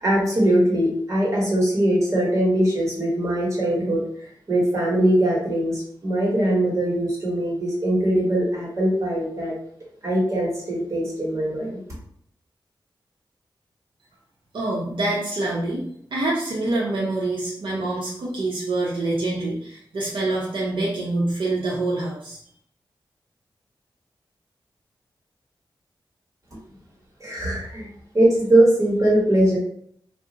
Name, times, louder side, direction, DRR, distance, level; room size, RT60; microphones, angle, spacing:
voice 1, 0.0-9.5 10.0-11.8 27.2-27.9 28.1-29.6, right 1 dB, 35° right, -4 dB, 1.2 m, -21 dB
voice 2, 14.5-15.8 16.1-22.4, right 2 dB, 80° right, -4 dB, 0.7 m, -26 dB
2.4 x 2.0 x 3.8 m, 0.65 s
wide cardioid pair, 95°, 8 cm